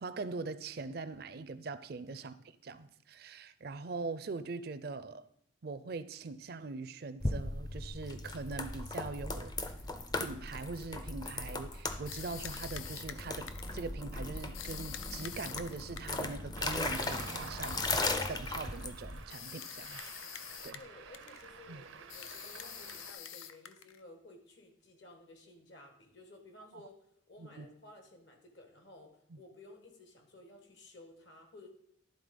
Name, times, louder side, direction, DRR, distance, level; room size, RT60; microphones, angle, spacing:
voice 1, 0.0-2.4 2.6-5.2 5.6-9.5 10.1-17.9 18.3-20.0 20.6-20.8 21.7-21.8 27.4-27.7 29.3-29.4, right 3 dB, 50° right, 0.4 m, -42 dB
sound 1, 7.2-19.2, left 2 dB, 20° left, 0.5 m, -38 dB
sound 2, 12.1-13.8 14.5-16.3 16.9-18.3 19.3-20.9 21.1-21.5 22.1-24.0, left 9 dB, 90° left, 0.5 m, -46 dB
Traffic noise roadway noise, 16.6-23.1, right 6 dB, 90° right, 0.7 m, -50 dB
voice 2, 20.7-27.0 27.3-31.7, left 2 dB, 65° left, 1.4 m, -55 dB
11.0 x 3.9 x 5.1 m
head